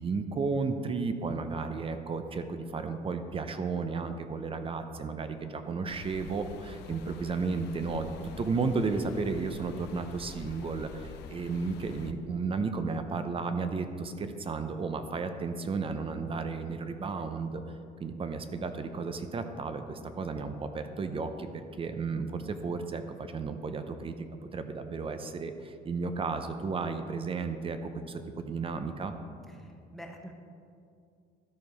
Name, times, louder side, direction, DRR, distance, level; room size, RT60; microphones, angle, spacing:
voice 1, 0.0-17.6 18.0-24.2 24.5-29.1, right 4 dB, 35° right, 8 dB, 0.6 m, -33 dB
sound 1, 5.8-12.1, left 5 dB, 85° left, 0.6 m, -46 dB
voice 2, 29.5-30.3, equal, ahead, 2 dB, 1.1 m, -47 dB
12.5 x 4.5 x 5.3 m, 2.4 s
cardioid pair, 110°, 17 cm